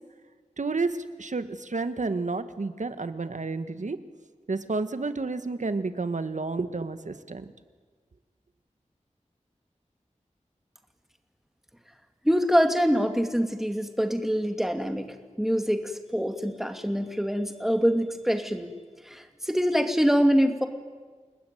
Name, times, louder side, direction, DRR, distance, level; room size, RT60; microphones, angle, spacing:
voice 1, 0.6-4.0 4.5-7.5, right 3 dB, 75° right, 10 dB, 1.6 m, -30 dB
voice 2, 12.2-18.7 19.0-20.7, equal, 5° right, 6 dB, 2.5 m, -25 dB
29.5 x 19.5 x 9.3 m, 1.5 s
wide cardioid pair, 65°, 13 cm